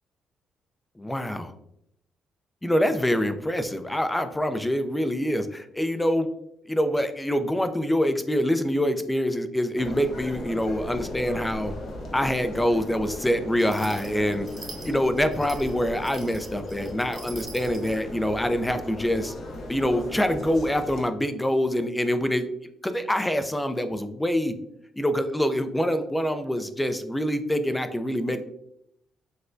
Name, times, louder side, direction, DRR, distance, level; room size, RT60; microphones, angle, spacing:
voice 1, 1.0-1.5 2.6-6.3 6.7-11.7 12.1-14.5 14.8-19.3 19.7-22.5 22.8-24.5 25.0-28.4, equal, 10° left, 9 dB, 0.4 m, -25 dB
sound 1, 9.7-21.0, left 1 dB, 60° left, 0.8 m, -37 dB
sound 2, 13.6-18.0, right 2 dB, 25° right, 0.8 m, -44 dB
6.2 x 2.2 x 2.5 m, 0.76 s
cardioid pair, 90°, 0 cm